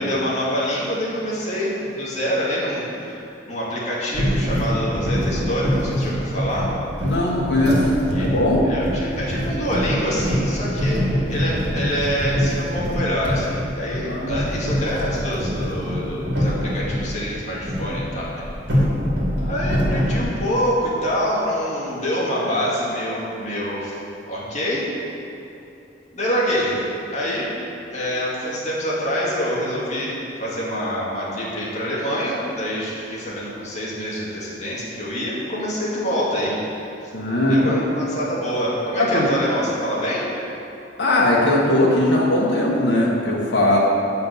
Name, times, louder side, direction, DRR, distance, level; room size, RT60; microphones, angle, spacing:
voice 1, 0.0-3.2 3.5-6.7 8.1-8.4 8.7-18.3 19.4-24.0 24.3-24.9 26.1-26.8 27.1-27.5 27.9-30.1 30.4-36.5 37.4-40.3, equal, 40° left, -6 dB, 2.3 m, -26 dB
sound 1, 4.1-17.1 17.6-20.2, equal, 75° right, 2.5 m, -24 dB
voice 2, 7.0-7.8 8.2-8.7 14.0-14.3 37.1-37.8 39.0-39.3 41.0-43.8, left 1 dB, 80° left, -4 dB, 1.6 m, -19 dB
9.5 x 5.7 x 6.7 m, 2.8 s
head